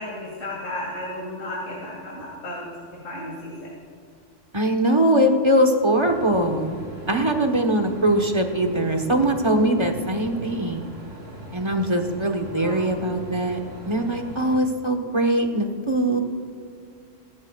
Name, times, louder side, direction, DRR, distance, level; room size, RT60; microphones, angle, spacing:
voice 1, 0.0-3.7 12.6-12.8, left 1 dB, 85° left, -4 dB, 2.8 m, -34 dB
voice 2, 4.5-6.8 7.1-10.8 11.5-13.6 13.8-16.2, right 1 dB, 25° right, 3 dB, 1.2 m, -21 dB
sound 1, 5.9-14.6, right 1 dB, 85° right, 3.3 m, -40 dB
23.0 x 12.5 x 2.4 m, 2.3 s
omnidirectional pair, 1.3 m